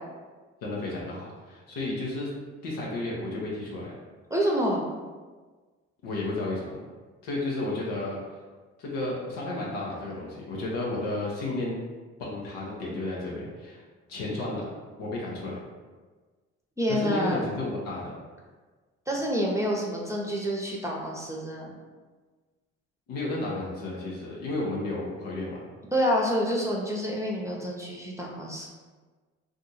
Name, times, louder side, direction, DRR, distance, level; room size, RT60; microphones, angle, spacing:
voice 1, 0.6-2.3 2.6-3.9 6.0-6.8 7.2-8.2 8.8-11.7 12.2-13.8 14.1-14.6 15.0-15.6 16.9-18.1 23.1-25.6, left 2 dB, 80° left, -4 dB, 0.7 m, -32 dB
voice 2, 4.3-4.8 16.8-17.5 19.1-21.7 25.9-28.7, equal, 10° right, -2 dB, 0.7 m, -28 dB
2.6 x 2.4 x 4.0 m, 1.4 s
hypercardioid pair, 50°, 33 cm